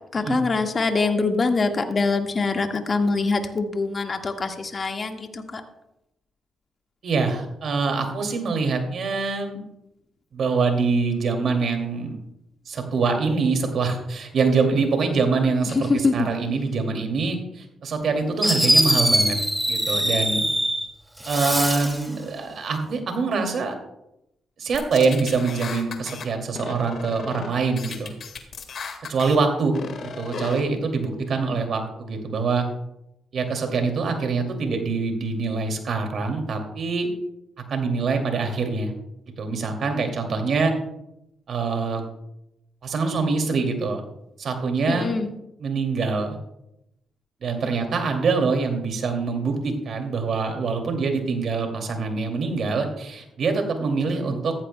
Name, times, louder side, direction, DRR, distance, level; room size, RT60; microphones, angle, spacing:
voice 1, 0.1-5.6 15.9-16.3 44.9-45.3, left 3 dB, 40° left, 4 dB, 1.6 m, -24 dB
voice 2, 7.0-9.6 10.3-12.1 12.7-19.4 19.7-20.5 21.2-23.8 24.6-28.1 29.1-29.8 30.0-32.6 33.3-37.1 37.7-38.9 39.4-40.7 41.5-42.0 42.8-44.0 44.4-45.1 45.6-46.3 47.4-54.5, right 4 dB, 65° right, 4 dB, 2.4 m, -24 dB
Fireworks, 18.0-18.1 18.4-20.8 21.2-22.0, equal, 5° right, 2.1 m, -22 dB
sound 1, 24.7-26.3 26.6-27.5 27.8-29.4 29.7-30.6, left 6 dB, 65° left, 1.7 m, -35 dB
14.5 x 14.0 x 2.2 m, 0.84 s
cardioid pair, 75°, 0 cm